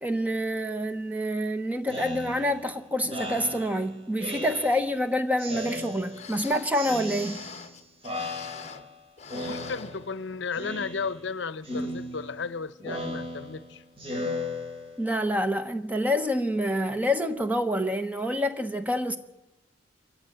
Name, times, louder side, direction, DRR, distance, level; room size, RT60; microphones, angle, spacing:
voice 1, 0.0-7.4 15.0-19.2, equal, 10° right, 1.1 m, -27 dB
Speech synthesizer, 1.9-5.0 5.4-6.4 6.7-7.8 8.0-9.0 9.3-10.2 10.5-11.3 11.6-15.2, left 1 dB, 30° right, 3.2 m, -36 dB
sound 1, 5.8-5.9 6.1-8.9 9.2-10.6 11.0-11.1 11.7-12.0 12.4-12.5, left 5 dB, 35° left, 1.0 m, -44 dB
voice 2, 9.4-13.8, left 5 dB, 70° left, 0.7 m, -34 dB
24.5 x 14.5 x 8.9 m
head